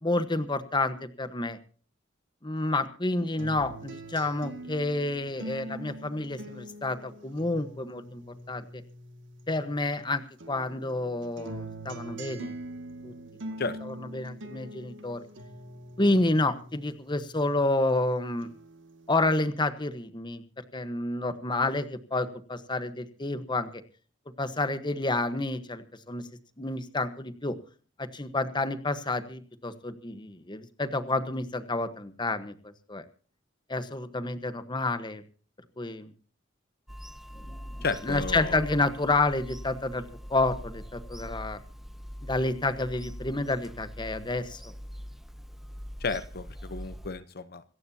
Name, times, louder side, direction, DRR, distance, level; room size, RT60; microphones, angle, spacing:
voice 1, 0.0-1.6 2.4-8.8 9.5-10.2 10.5-12.5 13.0-13.1 13.8-15.2 16.0-18.5 19.1-20.4 20.7-23.8 24.4-26.3 26.6-27.6 28.0-33.0 33.7-35.2 35.8-36.1 37.5-37.7 38.0-40.0 40.3-41.6 42.2-44.7, left 2 dB, 25° left, 11 dB, 1.2 m, -29 dB
sound 1, 3.4-10.0 10.4-18.0 18.4-19.4, right 1 dB, 75° right, 2.1 m, -44 dB
Bird vocalization bird call bird song / Telephone, 36.9-47.1, equal, ahead, 0.6 m, -42 dB
voice 2, 37.8-38.7 46.0-47.6, left 4 dB, 55° left, 13 dB, 0.9 m, -33 dB
26.0 x 14.5 x 2.8 m, 0.41 s
head